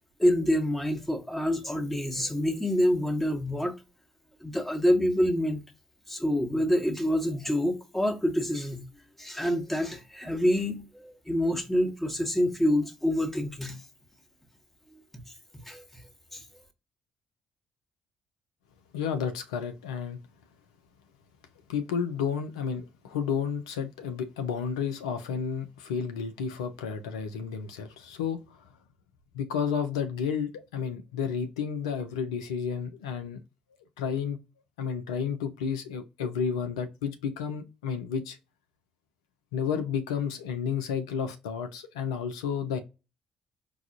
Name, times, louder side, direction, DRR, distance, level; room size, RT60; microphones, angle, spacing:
voice 1, 0.2-3.7 4.4-5.6 6.1-8.8 9.2-13.8 15.7-16.0 16.3-16.4, equal, 5° left, 1.1 m, -27 dB
voice 2, 18.9-20.2 21.7-28.7 29.3-33.4 34.0-34.4 34.8-38.4 39.5-42.8, left 7 dB, 80° left, 0.4 m, -31 dB
4.6 x 2.3 x 2.6 m
figure-of-eight pair, 45°, 3 cm